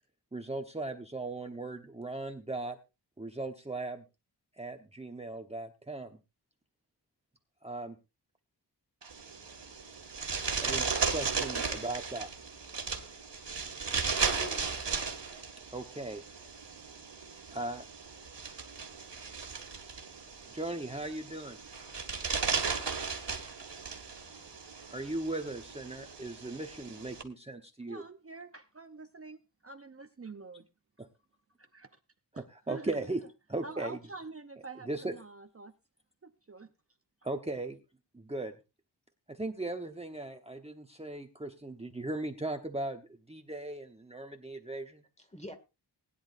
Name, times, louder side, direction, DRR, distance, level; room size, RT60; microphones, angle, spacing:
voice 1, 0.3-2.8 3.2-4.0 4.6-6.1 7.6-8.0 10.6-12.3 15.7-16.2 17.5-17.9 20.5-21.6 24.3-24.5 24.9-28.0 31.0-31.1 32.3-33.2 33.5-34.0 34.9-35.1 37.2-37.8 38.1-38.5 39.3-45.0, right 2 dB, 15° right, 1.1 m, -38 dB
sound 1, 9.0-27.2, right 5 dB, 80° right, 2.2 m, -36 dB
voice 2, 13.8-14.7 45.2-45.5, left 2 dB, 15° left, 2.1 m, -48 dB
voice 3, 27.9-30.7 31.7-31.9 32.3-33.1 33.6-35.7 36.2-36.7, right 3 dB, 35° right, 0.8 m, -47 dB
20.5 x 10.5 x 2.6 m
wide cardioid pair, 90°, 42 cm